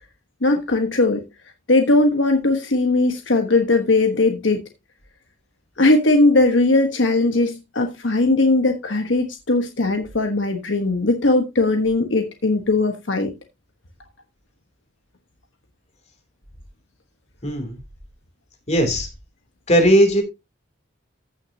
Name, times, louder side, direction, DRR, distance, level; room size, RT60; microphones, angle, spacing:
voice 1, 0.4-1.2 1.7-4.6 5.8-13.3, left 2 dB, 65° left, 1.2 m, -19 dB
voice 2, 17.4-17.8 18.7-19.1 19.7-20.2, equal, 35° left, 2.9 m, -17 dB
15.0 x 6.2 x 2.8 m
head